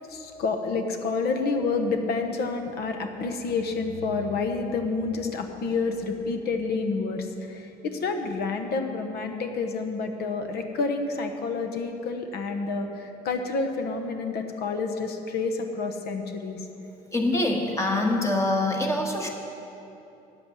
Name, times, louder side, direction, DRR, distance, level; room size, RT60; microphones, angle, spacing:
voice 1, 0.1-16.6, left 4 dB, 70° left, 6 dB, 1.1 m, -29 dB
voice 2, 17.1-19.3, left 2 dB, 15° left, 1 dB, 1.5 m, -24 dB
9.4 x 8.0 x 7.2 m, 2.9 s
cardioid pair, 110°, 17 cm